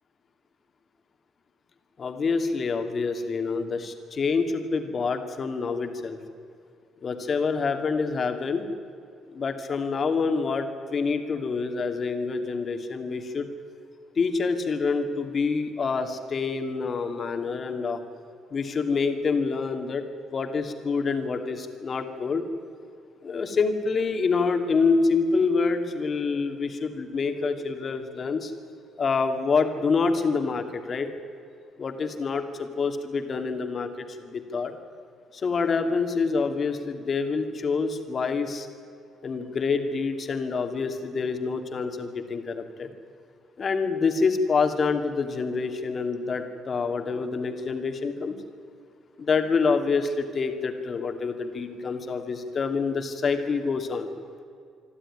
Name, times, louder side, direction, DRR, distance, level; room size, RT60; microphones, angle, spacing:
voice 1, 2.0-6.2 7.0-8.7 9.3-13.5 14.2-18.0 18.5-20.0 20.3-22.4 23.2-28.5 29.0-31.1 31.8-34.8 35.3-38.7 39.2-42.9 43.6-48.4 49.2-54.1, left 4 dB, 40° left, 7 dB, 2.4 m, -27 dB
25.5 x 12.5 x 9.9 m, 2.3 s
cardioid pair, 110°, 0 cm